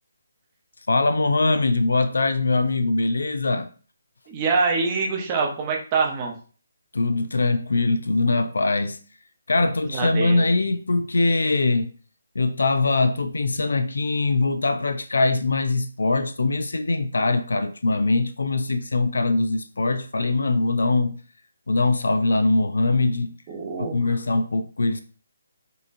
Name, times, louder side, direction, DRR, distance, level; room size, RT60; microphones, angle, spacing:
voice 1, 0.9-3.7 6.9-9.0 9.5-11.9 12.4-21.1 21.7-23.4 23.8-25.0, left 3 dB, 90° left, 0.4 m, -22 dB
voice 2, 4.3-6.3 9.6-10.4 23.5-24.1, right 4 dB, 15° right, 0.7 m, -25 dB
5.4 x 2.8 x 2.6 m
hypercardioid pair, 175°, 0 cm